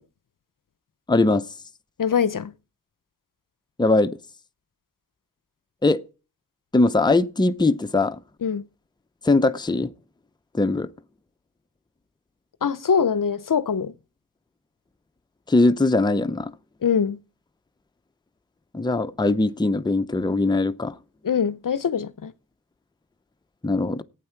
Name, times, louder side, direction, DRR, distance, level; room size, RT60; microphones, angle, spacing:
voice 1, 1.1-1.5 3.8-4.2 5.8-6.0 6.7-8.2 9.2-9.9 10.5-10.9 15.5-16.5 18.7-21.0 23.6-24.0, left 2 dB, 10° left, 0.6 m, -21 dB
voice 2, 2.0-2.5 8.4-8.6 12.6-13.9 16.8-17.2 21.2-22.3, left 6 dB, 55° left, 0.7 m, -23 dB
12.0 x 8.9 x 4.5 m
wide cardioid pair, 65°, 38 cm